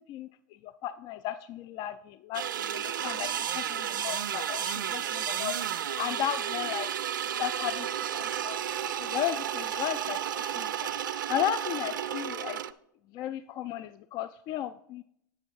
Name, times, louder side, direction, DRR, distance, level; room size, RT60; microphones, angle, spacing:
voice 1, 0.6-6.9 7.4-7.9 8.1-8.6 9.0-10.9 11.3-12.6 13.1-15.0, left 11 dB, 40° left, 13 dB, 0.3 m, -35 dB
sound 1, 2.3-12.7, right 10 dB, 75° right, 0.4 m, -32 dB
sound 2, 7.6-11.8 12.1-12.5, right 1 dB, 5° right, 0.6 m, -50 dB
8.2 x 6.2 x 4.6 m, 0.72 s
hypercardioid pair, 95°, 11 cm